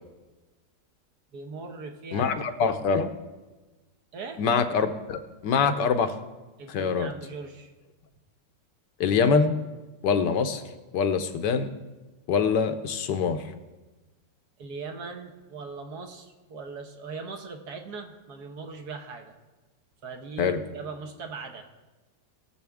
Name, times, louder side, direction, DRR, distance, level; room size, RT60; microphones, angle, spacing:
voice 1, 1.3-2.3 2.8-2.9 4.1-4.4 6.6-7.7 14.6-19.3 20.0-21.7, right 4 dB, 65° right, 4 dB, 1.6 m, -40 dB
voice 2, 2.1-3.1 4.4-6.1 6.7-7.1 9.0-9.5 10.0-10.6 10.9-11.7 12.3-13.5 20.4-20.6, left 5 dB, 80° left, 8 dB, 1.4 m, -24 dB
20.0 x 7.0 x 3.5 m, 1.2 s
omnidirectional pair, 1.9 m